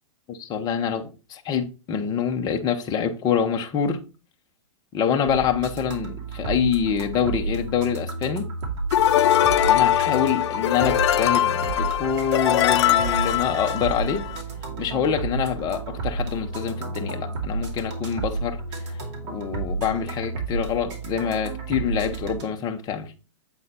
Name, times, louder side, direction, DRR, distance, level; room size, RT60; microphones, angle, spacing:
voice 1, 0.3-4.0 4.9-8.5 9.6-14.2 14.8-18.6 19.3-23.1, left 7 dB, 25° left, 0.9 m, -26 dB
sound 1, 5.3-22.4, right 3 dB, 40° right, 2.3 m, -32 dB
sound 2, 8.9-14.4, left 11 dB, 60° left, 0.5 m, -21 dB
7.8 x 4.1 x 4.2 m
hypercardioid pair, 135°, 16 cm